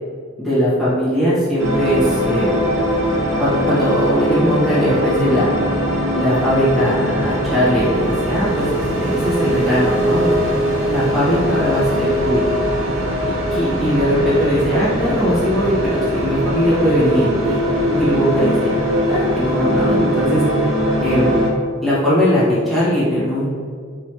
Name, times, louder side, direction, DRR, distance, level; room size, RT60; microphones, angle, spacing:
voice 1, 0.4-2.6 3.4-5.5 6.1-12.4 13.5-17.6 17.9-18.8 19.1-20.4 21.0-21.3 21.8-23.4, equal, ahead, -12 dB, 1.3 m, -19 dB
sound 1, 1.6-21.5, equal, 65° right, 1.0 m, -21 dB
4.8 x 3.0 x 3.0 m, 2.1 s
head